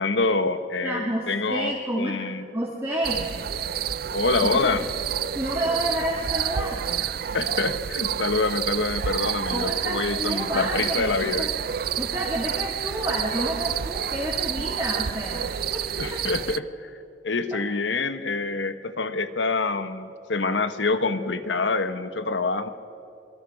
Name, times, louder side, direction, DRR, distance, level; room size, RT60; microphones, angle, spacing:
voice 1, 0.0-2.5 4.1-4.8 7.3-11.5 16.0-16.9 17.2-22.7, left 3 dB, 90° left, 10 dB, 1.2 m, -26 dB
voice 2, 0.8-2.2 2.5-3.3 4.4-4.8 5.3-7.1 9.5-11.1 11.4-11.5 12.0-15.8 16.1-16.2 17.5-17.6, right 1 dB, 15° right, -5 dB, 2.6 m, -29 dB
sound 1, 3.0-16.6, right 9 dB, 55° right, 0.4 m, -29 dB
27.0 x 22.5 x 5.3 m, 2.6 s
head